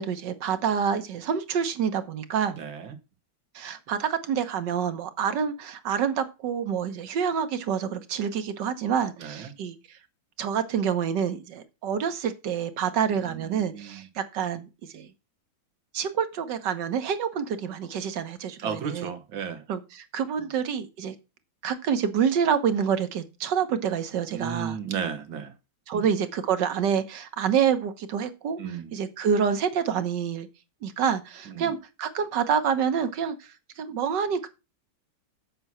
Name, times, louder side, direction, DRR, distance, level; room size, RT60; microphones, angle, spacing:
voice 1, 0.0-2.6 3.6-10.0 10.4-14.7 14.9-15.1 15.9-19.1 19.7-21.2 21.6-24.8 25.9-30.5 30.8-34.5, right 7 dB, 65° right, 1.6 m, -27 dB
voice 2, 2.6-2.9 9.2-9.5 13.4-14.0 18.6-19.6 24.3-25.5 25.9-26.0 28.6-28.9 31.6-31.7, right 7 dB, 85° right, 2.0 m, -33 dB
7.9 x 6.0 x 5.5 m
omnidirectional pair, 2.1 m